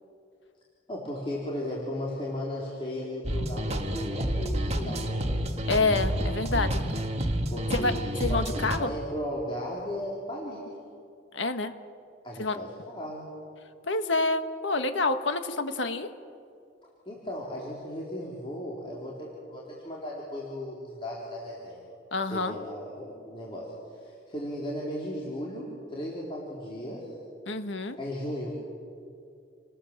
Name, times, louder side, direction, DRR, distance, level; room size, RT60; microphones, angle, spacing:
voice 1, 0.9-5.6 7.5-10.6 12.2-13.3 17.1-21.8 22.3-27.1 28.0-28.5, equal, 30° left, -5 dB, 3.8 m, -36 dB
sound 1, 3.2-8.8, right 1 dB, 35° right, 1.8 m, -29 dB
voice 2, 5.7-6.8 7.7-7.9 8.2-8.9 11.3-11.7 12.4-12.6 13.9-16.1 22.1-22.5 27.5-28.0, left 3 dB, 75° left, 8 dB, 1.5 m, -27 dB
29.0 x 19.5 x 7.4 m, 2.4 s
head